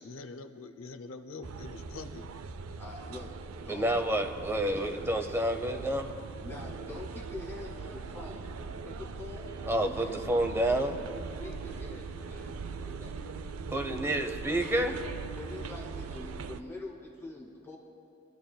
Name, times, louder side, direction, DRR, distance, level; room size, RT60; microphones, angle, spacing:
voice 1, 0.0-2.3, left 3 dB, 80° left, 8 dB, 0.6 m, -44 dB
sound 1, 1.4-16.6, right 4 dB, 85° right, 0.5 m, -41 dB
voice 2, 2.8-3.9 4.7-4.9 6.4-9.5 9.8-10.1 10.5-10.6 11.1-13.1 15.3-17.8, left 2 dB, 10° left, -5 dB, 1.9 m, -45 dB
voice 3, 3.7-6.2 9.7-10.9 13.7-15.0, right 1 dB, 10° right, 4 dB, 0.8 m, -29 dB
23.5 x 13.0 x 2.3 m, 2.5 s
head